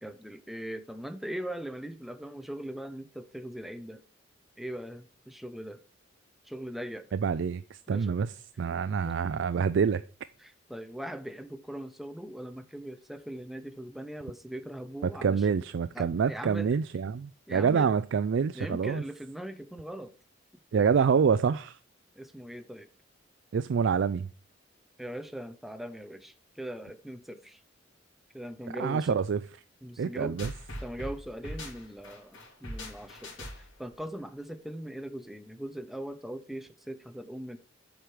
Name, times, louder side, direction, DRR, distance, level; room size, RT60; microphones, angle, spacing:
voice 1, 0.0-4.0 4.6-5.8 6.4-7.1 7.9-8.2 9.0-9.2 10.4-15.5 15.9-16.7 17.5-17.9 18.5-20.1 20.7-20.9 22.2-22.9 25.0-27.6 28.3-29.2 29.8-30.4 30.8-37.6, right 1 dB, ahead, 0.7 m, -40 dB
voice 2, 7.1-8.3 8.6-10.0 15.2-19.0 20.7-21.8 23.5-24.3 28.8-29.4 30.0-30.5, right 6 dB, 65° right, 0.4 m, -26 dB
sound 1, 30.4-33.9, left 1 dB, 90° left, 2.9 m, -41 dB
8.0 x 4.9 x 6.0 m
head